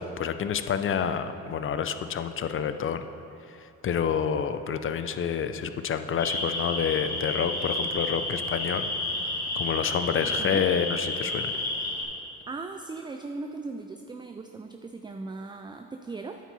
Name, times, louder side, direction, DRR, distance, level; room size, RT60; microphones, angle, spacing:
voice 1, 0.0-3.0 3.5-3.6 3.8-8.9 9.6-11.5, left 7 dB, 45° left, 10 dB, 0.5 m, -28 dB
sound 1, 6.2-12.0, left 2 dB, 65° left, 1.8 m, -31 dB
voice 2, 10.2-10.6 12.5-16.4, right 3 dB, 15° right, 5 dB, 0.4 m, -38 dB
9.1 x 7.4 x 4.2 m, 2.8 s
cardioid pair, 90°, 30 cm